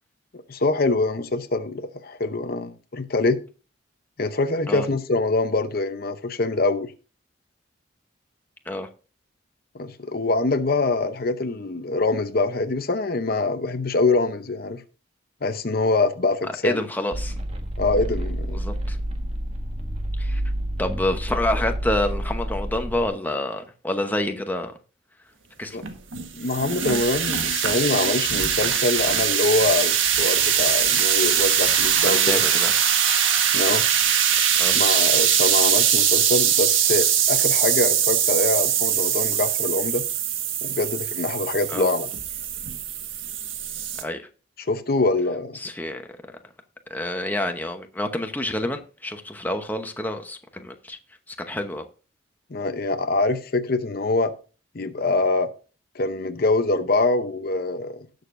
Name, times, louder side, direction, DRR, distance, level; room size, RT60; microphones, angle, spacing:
voice 1, 0.5-3.4 4.2-6.9 9.7-14.8 15.4-16.8 17.8-18.6 25.7-25.8 26.4-32.4 33.5-33.9 34.7-40.0 40.6-42.1 44.6-45.6 52.5-54.3 54.7-55.5 55.9-58.1, left 3 dB, 50° left, 0.7 m, -24 dB
voice 2, 16.6-17.3 18.5-19.0 20.2-20.4 20.8-24.7 25.6-25.8 32.0-32.7 34.6-34.8 41.7-41.9 44.0-44.2 45.5-46.0 46.9-51.0 51.3-51.8, left 1 dB, 10° left, 0.9 m, -28 dB
sound 1, 17.1-23.1, right 1 dB, 30° right, 1.5 m, -29 dB
sound 2, 25.8-44.0, right 9 dB, 80° right, 1.5 m, -22 dB
18.0 x 6.6 x 2.6 m
head